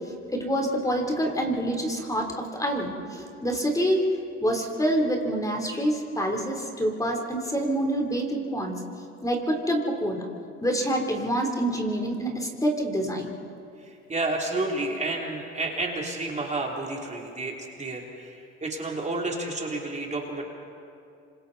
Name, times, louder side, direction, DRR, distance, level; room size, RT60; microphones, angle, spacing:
voice 1, 0.3-4.1 4.4-8.8 9.2-10.2 10.6-13.3, right 1 dB, 10° left, 1 dB, 3.6 m, -26 dB
voice 2, 13.8-20.4, right 2 dB, 20° right, -1 dB, 3.2 m, -31 dB
27.5 x 26.0 x 4.2 m, 2.6 s
supercardioid pair, 85°, 31 cm